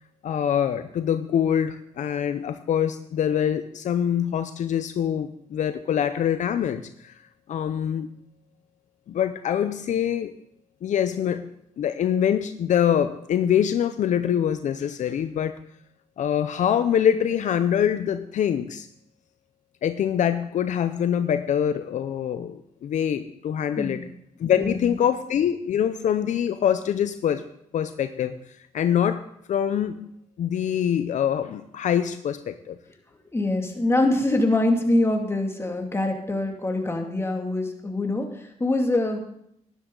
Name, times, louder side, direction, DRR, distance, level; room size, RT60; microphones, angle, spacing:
voice 1, 0.2-7.1 7.5-8.1 9.1-10.3 10.8-11.5 11.8-15.5 16.2-18.9 19.8-24.0 24.4-27.4 27.7-28.3 28.7-29.2 29.5-30.1 30.4-32.8, left 9 dB, 70° left, 10 dB, 0.6 m, -24 dB
voice 2, 24.6-25.0 33.3-39.2, left 2 dB, 20° left, 2 dB, 2.3 m, -24 dB
12.5 x 11.0 x 3.9 m, 0.73 s
cardioid pair, 75°, 13 cm